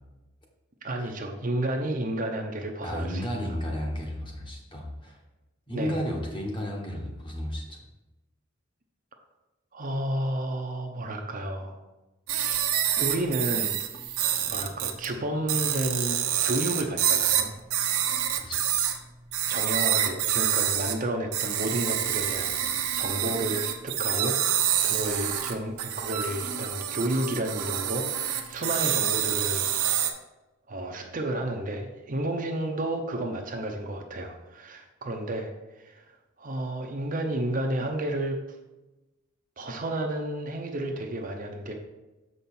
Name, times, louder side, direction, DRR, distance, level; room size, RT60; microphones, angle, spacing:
voice 1, 0.8-3.6 5.7-5.9 9.7-11.8 12.3-12.7 13.0-13.8 14.5-17.6 19.5-22.6 22.9-30.0 30.7-35.5 35.8-36.0 36.4-38.4 39.6-41.7, right 1 dB, 35° right, 3 dB, 0.7 m, -31 dB
voice 2, 2.8-5.2 5.7-7.8 18.4-18.7, equal, 20° left, 0 dB, 1.2 m, -33 dB
sound 1, 12.3-15.1 15.5-19.0 19.3-21.0 21.3-30.1, right 10 dB, 80° right, 0.8 m, -27 dB
7.1 x 5.4 x 4.3 m, 1.1 s
head